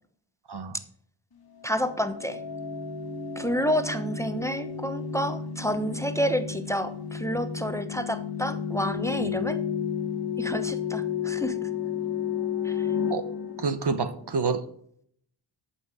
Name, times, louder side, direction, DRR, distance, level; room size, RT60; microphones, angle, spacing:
voice 1, 1.6-2.4 3.4-9.6 10.4-11.6 12.6-12.9, equal, 5° left, 10 dB, 1.0 m, -29 dB
sound 1, 1.7-14.4, left 7 dB, 50° left, 1.6 m, -32 dB
voice 2, 13.6-14.6, right 4 dB, 55° right, 11 dB, 1.1 m, -28 dB
14.0 x 5.7 x 4.9 m, 0.64 s
cardioid pair, 55°, 48 cm